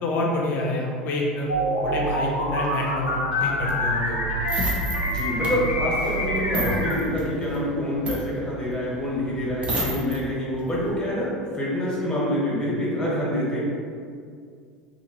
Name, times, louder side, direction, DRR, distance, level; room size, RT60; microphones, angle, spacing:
voice 1, 0.0-1.5 1.8-4.2, left 2 dB, 45° left, -1 dB, 0.7 m, -27 dB
sound 1, 1.5-7.0, equal, 90° left, 0.4 m, -26 dB
sound 2, 3.3-10.2 10.5-10.6 11.1-11.3 11.5-11.6, right 1 dB, 85° right, 0.7 m, -40 dB
sound 3, 3.5-10.2 10.6-10.9, equal, 25° right, 0.7 m, -31 dB
voice 2, 5.0-13.6, equal, 15° left, -6 dB, 1.2 m, -26 dB
2.8 x 2.7 x 2.9 m, 2.2 s
hypercardioid pair, 80°, 4 cm